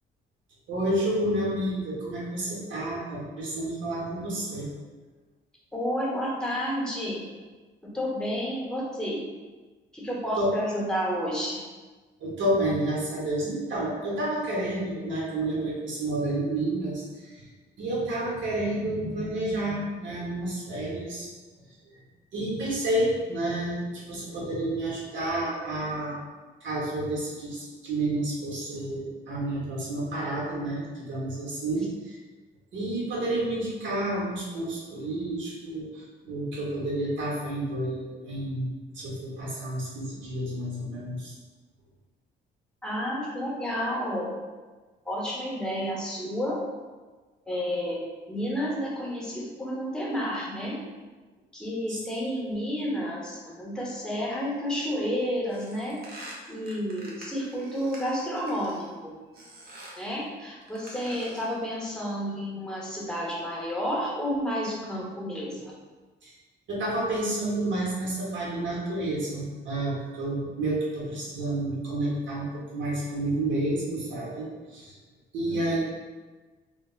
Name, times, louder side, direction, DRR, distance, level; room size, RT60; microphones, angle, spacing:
voice 1, 0.7-4.7 10.4-10.5 12.2-17.5 17.8-21.3 22.3-26.2 26.6-32.2 32.7-41.3 51.9-52.0 66.2-66.3 66.7-74.9 75.3-75.8, right 1 dB, 70° right, -5 dB, 1.0 m, -30 dB
voice 2, 5.7-7.2 7.9-9.2 9.9-11.6 42.8-44.3 45.0-46.6 47.5-48.0 48.3-50.8 51.5-56.0 56.5-58.9 60.0-65.7 75.4-75.6, equal, 5° left, -5 dB, 0.8 m, -30 dB
sound 1, 55.5-58.9 59.3-60.1 60.6-61.6, right 1 dB, 50° right, 0.7 m, -46 dB
3.3 x 2.1 x 2.4 m, 1.3 s
cardioid pair, 90°, 20 cm